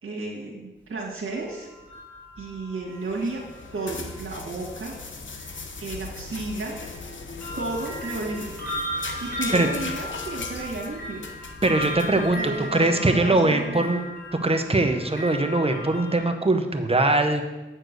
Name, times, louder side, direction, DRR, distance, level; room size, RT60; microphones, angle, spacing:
voice 1, 0.0-1.7 2.4-3.4 3.7-5.0 5.8-6.7 7.6-8.5 9.2-11.2 12.3-13.9, right 3 dB, 80° right, -3 dB, 1.7 m, -32 dB
sound 1, 1.3-4.4 5.4-5.5 6.3-16.2, left 1 dB, 5° left, 3.1 m, -37 dB
sound 2, 2.9-12.9, left 4 dB, 65° left, 0.8 m, -39 dB
voice 2, 11.6-12.4 12.7-14.0 14.4-17.4, right 2 dB, 30° right, 6 dB, 1.0 m, -21 dB
7.8 x 4.5 x 6.7 m, 1.1 s
cardioid pair, 55°, 21 cm